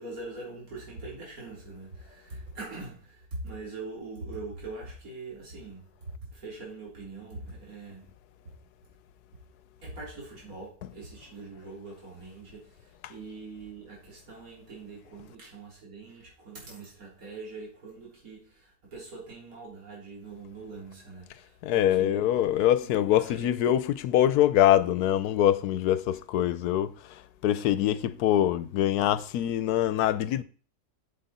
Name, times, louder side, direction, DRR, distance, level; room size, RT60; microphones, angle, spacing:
voice 1, 0.0-5.9 6.3-8.1 9.8-22.3 22.8-23.5, right 3 dB, 65° right, 3.8 m, -43 dB
voice 2, 21.6-26.9 27.4-30.4, left 12 dB, 80° left, 1.2 m, -24 dB
7.9 x 7.4 x 4.1 m
omnidirectional pair, 1.6 m